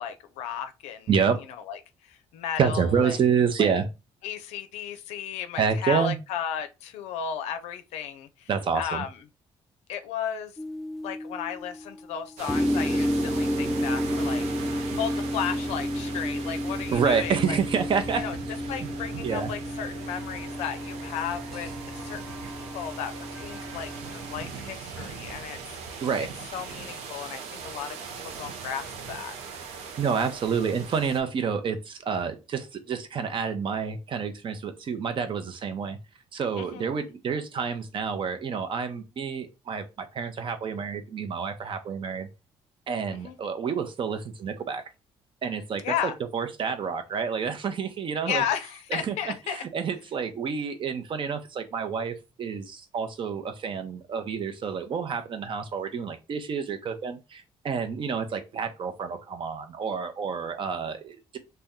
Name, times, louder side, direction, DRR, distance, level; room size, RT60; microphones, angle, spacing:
voice 1, 0.0-1.1 1.7-3.2 3.6-3.7 4.2-8.5 8.7-9.2 9.9-10.6 11.0-17.6 18.1-18.4 18.7-26.0 26.5-28.0 28.2-29.3 36.6-36.9 43.1-43.4 45.8-46.1 48.3-49.6, left 9 dB, 90° left, 0.4 m, -34 dB
voice 2, 1.1-1.4 2.6-3.9 5.6-6.2 8.5-9.0 16.9-18.2 18.8-18.9 19.2-19.5 26.0-26.3 30.0-36.0 36.3-42.3 42.9-44.8 45.4-45.8 46.3-48.4 48.9-49.2 49.5-61.4, right 6 dB, 50° right, 0.7 m, -28 dB
sound 1, 10.6-12.2 12.5-24.5, equal, ahead, 0.3 m, -31 dB
sound 2, 12.4-31.2, right 5 dB, 85° right, 0.5 m, -40 dB
2.7 x 2.2 x 3.5 m
cardioid pair, 85°, 11 cm